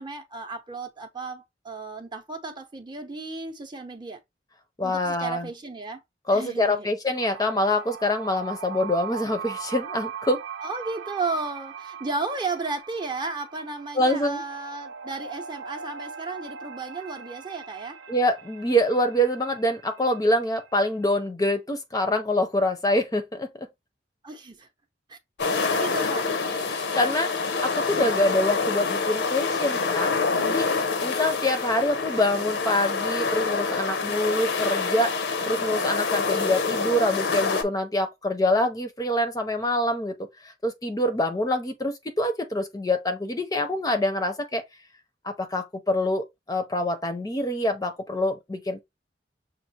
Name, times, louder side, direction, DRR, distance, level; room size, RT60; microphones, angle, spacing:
voice 1, 0.0-4.2 4.8-6.0 6.3-6.9 10.6-18.0 24.2-24.7 25.1-25.2 25.7-26.3, right 3 dB, 25° right, 0.7 m, -34 dB
voice 2, 4.8-5.5 6.3-10.4 13.9-14.4 18.1-23.7 26.7-30.1 30.5-30.7 31.0-35.2 35.5-44.6 45.2-48.8, left 1 dB, 20° left, 0.6 m, -25 dB
sound 1, 7.2-20.9, right 7 dB, 80° right, 0.5 m, -40 dB
sound 2, 25.4-37.6, left 4 dB, 75° left, 0.8 m, -26 dB
6.4 x 2.5 x 2.8 m
head